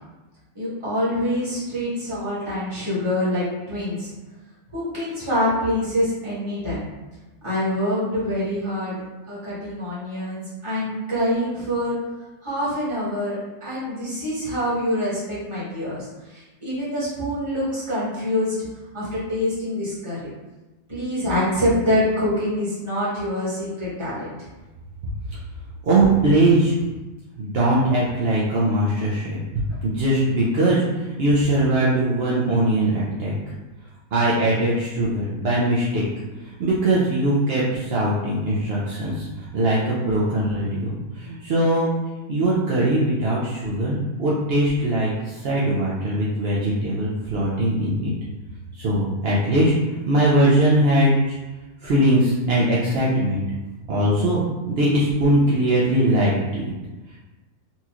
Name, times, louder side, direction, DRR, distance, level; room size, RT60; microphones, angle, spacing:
voice 1, 0.5-4.1 4.7-6.8 7.4-9.0 9.3-12.0 12.4-18.5 18.9-20.3 20.9-24.3, left 1 dB, 20° right, -11 dB, 1.5 m, -25 dB
voice 2, 25.8-26.7 27.4-29.4 29.8-33.3 34.1-36.0 36.6-39.3 39.5-41.9 42.3-48.1 48.8-49.7 50.1-51.1 51.8-53.4 53.9-56.6, right 1 dB, 60° right, -7 dB, 0.6 m, -21 dB
4.1 x 2.9 x 2.4 m, 1.1 s
omnidirectional pair, 1.7 m